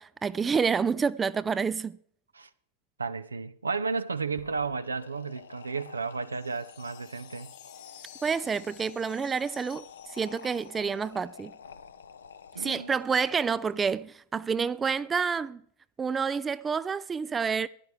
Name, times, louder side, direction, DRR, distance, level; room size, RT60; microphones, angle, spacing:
voice 1, 0.0-2.0 8.2-9.8 10.1-11.5 12.6-15.6 16.0-17.7, right 6 dB, 15° right, 0.3 m, -28 dB
voice 2, 3.0-7.5 12.5-12.9, right 4 dB, 75° right, 0.6 m, -33 dB
sound 1, 4.3-14.0, left 6 dB, 70° left, 0.6 m, -49 dB
sound 2, 6.3-11.0, left 11 dB, 50° left, 1.0 m, -53 dB
15.5 x 10.5 x 3.2 m
figure-of-eight pair, 90°, 0 cm